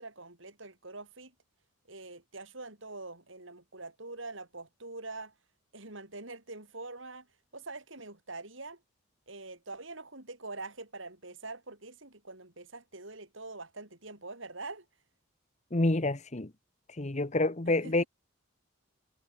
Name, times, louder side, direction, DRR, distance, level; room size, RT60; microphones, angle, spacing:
voice 1, 0.0-1.3 1.9-5.4 5.7-7.3 7.5-8.8 9.3-14.9 17.7-18.1, right 3 dB, 65° right, 5.7 m, -44 dB
voice 2, 15.7-16.5 17.0-18.0, left 2 dB, 35° left, 1.2 m, -28 dB
head